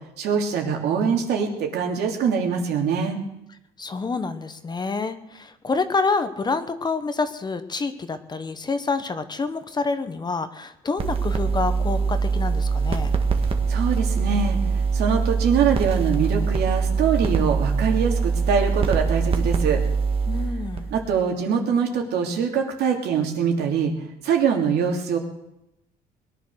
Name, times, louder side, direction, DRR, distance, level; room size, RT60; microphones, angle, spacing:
voice 1, 0.2-3.2 13.7-19.8 20.9-23.9 24.2-25.2, right 6 dB, 75° right, 2 dB, 3.1 m, -23 dB
voice 2, 3.8-13.1 20.3-20.9, left 4 dB, 25° left, 10 dB, 1.2 m, -27 dB
sound 1, 11.0-21.2, right 5 dB, 35° right, 1.8 m, -23 dB
21.0 x 10.5 x 6.4 m, 0.85 s
cardioid pair, 110°, 17 cm